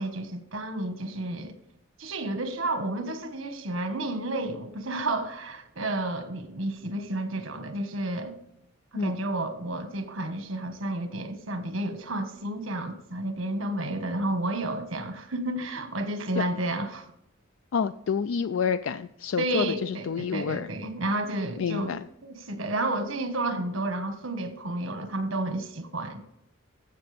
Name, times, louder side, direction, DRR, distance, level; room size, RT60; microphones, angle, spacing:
voice 1, 0.0-1.6 2.0-8.3 8.9-17.1 19.4-22.0 22.2-26.2, right 2 dB, 85° right, 7 dB, 1.5 m, -31 dB
voice 2, 17.7-20.7 21.6-22.0, left 6 dB, 75° left, 12 dB, 0.4 m, -28 dB
14.0 x 7.6 x 3.4 m, 0.80 s
head